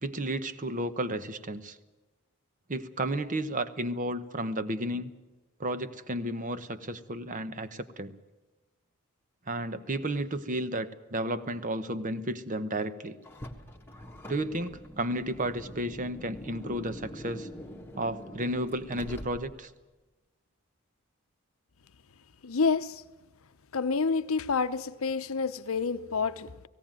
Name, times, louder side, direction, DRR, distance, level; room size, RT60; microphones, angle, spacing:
voice 1, 0.0-1.8 2.7-5.1 5.6-8.1 9.5-13.2 14.3-17.5 17.9-19.7, right 1 dB, 35° right, 0.9 m, -32 dB
Car, 13.2-19.8, equal, 10° left, 1.5 m, -44 dB
voice 2, 22.4-23.0 23.7-26.5, left 4 dB, 70° left, 0.8 m, -28 dB
17.5 x 17.0 x 9.0 m
head